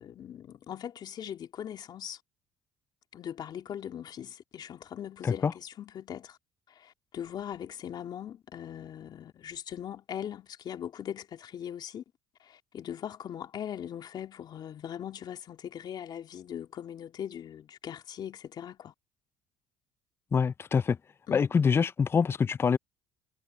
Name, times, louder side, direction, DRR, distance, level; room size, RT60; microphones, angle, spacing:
voice 1, 0.0-2.2 3.1-6.4 6.7-12.0 12.4-18.9 21.3-21.5, left 9 dB, 55° left, 2.9 m, -40 dB
voice 2, 20.3-21.0 21.3-22.8, left 6 dB, 25° left, 0.4 m, -25 dB
supercardioid pair, 85°, 9 cm